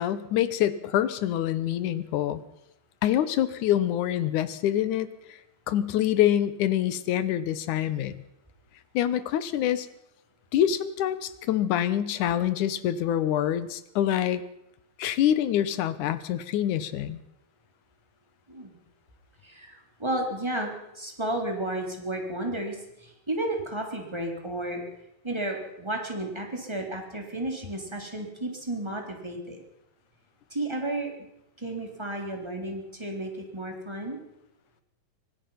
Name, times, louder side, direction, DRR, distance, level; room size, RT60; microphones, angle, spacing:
voice 1, 0.0-2.4 3.0-5.1 5.7-8.2 8.9-9.9 10.5-14.4 15.0-17.2, left 11 dB, 85° left, 15 dB, 2.5 m, -26 dB
voice 2, 19.4-24.8 25.2-29.6 30.5-31.1 31.6-34.2, right 1 dB, 10° right, 2 dB, 3.5 m, -32 dB
24.5 x 18.5 x 5.8 m, 0.82 s
omnidirectional pair, 3.4 m